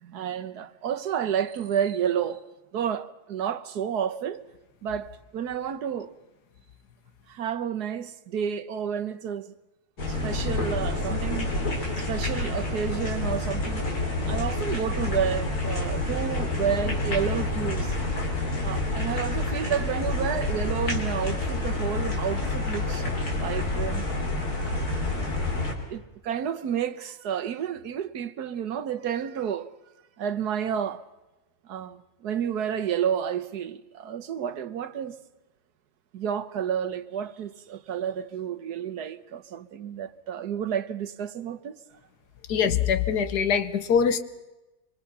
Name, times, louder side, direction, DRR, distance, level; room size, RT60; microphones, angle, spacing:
voice 1, 0.0-2.4 2.7-4.4 4.8-6.1 7.3-9.5 10.1-11.5 12.0-13.8 14.2-18.0 18.6-25.1 25.9-29.7 30.2-31.0 31.6-35.2 36.1-41.8, right 8 dB, 85° right, 1.6 m, -30 dB
sound 1, 10.0-25.7, left 2 dB, 70° left, 4.0 m, -28 dB
voice 2, 42.5-44.2, left 7 dB, 90° left, 1.7 m, -23 dB
25.5 x 24.5 x 5.7 m
omnidirectional pair, 1.7 m